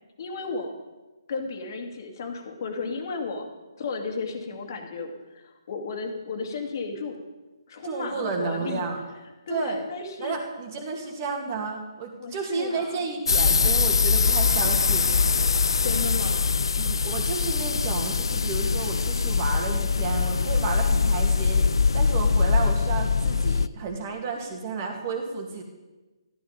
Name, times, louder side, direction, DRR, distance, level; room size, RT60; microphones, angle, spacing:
voice 1, 0.2-0.7 1.3-3.5 3.8-7.2 7.7-8.9 9.5-10.4 12.2-13.0 15.8-16.6, left 4 dB, 45° left, 3 dB, 2.3 m, -33 dB
voice 2, 7.8-9.0 9.5-9.8 10.2-15.2 16.8-21.7 21.9-25.6, right 4 dB, 35° right, 3 dB, 2.4 m, -32 dB
sound 1, 13.3-23.7, left 5 dB, 70° left, 0.4 m, -23 dB
13.0 x 13.0 x 5.2 m, 1.2 s
figure-of-eight pair, 145°, 3 cm